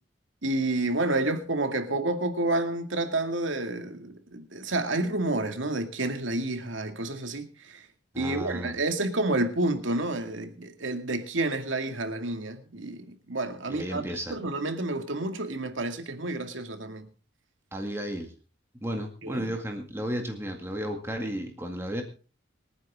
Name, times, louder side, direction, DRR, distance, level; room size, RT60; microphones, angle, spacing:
voice 1, 0.4-7.9 8.2-14.0 14.3-17.1 19.2-19.5, right 2 dB, 85° right, 2.2 m, -29 dB
voice 2, 8.1-8.8 13.7-14.4 17.7-18.3 18.8-22.0, equal, 15° right, 2.1 m, -33 dB
26.5 x 9.6 x 3.7 m
head